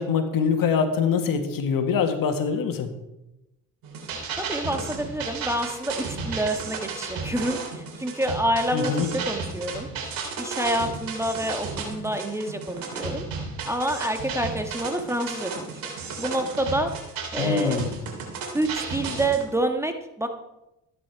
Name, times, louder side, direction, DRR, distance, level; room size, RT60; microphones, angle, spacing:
voice 1, 0.0-2.9 8.7-9.1 17.4-17.9, left 6 dB, 70° left, 6 dB, 1.9 m, -24 dB
sound 1, 3.8-19.4, right 4 dB, 75° right, 3.4 m, -34 dB
voice 2, 4.4-9.9 10.4-13.2 13.6-15.7 16.2-16.9 17.3-17.8 18.5-20.3, right 1 dB, 10° right, 5 dB, 1.6 m, -27 dB
14.0 x 9.8 x 4.8 m, 0.92 s
cardioid pair, 80°, 35 cm